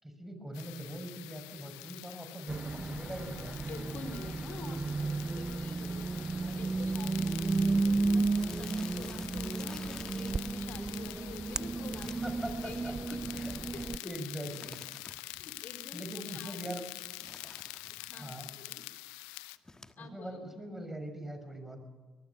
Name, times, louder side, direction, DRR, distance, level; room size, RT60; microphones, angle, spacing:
voice 1, 0.0-3.6 4.8-4.9 12.2-12.9 13.3-13.5 13.8-14.8 15.9-16.8 18.1-18.5 20.0-21.9, right 1 dB, 10° right, 7 dB, 6.1 m, -42 dB
sound 1, 0.5-19.6, left 20 dB, 85° left, 0.7 m, -46 dB
sound 2, 2.5-14.0, right 3 dB, 25° right, 0.6 m, -33 dB
sound 3, 3.1-3.3 4.0-4.1 4.3-4.4 4.6-4.9 5.2-5.3 5.7-5.8 6.5-6.6 6.8-7.1 7.4-7.5 8.3-10.6 11.9-13.1 14.5-15.5 17.0-18.1 19.6-19.9, left 2 dB, 15° left, 1.4 m, -52 dB
voice 2, 3.7-13.4 13.7-14.2 15.2-16.1 16.3-16.6 18.0-18.8 20.0-20.4, left 4 dB, 55° left, 7 dB, 4.2 m, -48 dB
23.5 x 19.5 x 7.2 m, 1.3 s
hypercardioid pair, 60°, 3 cm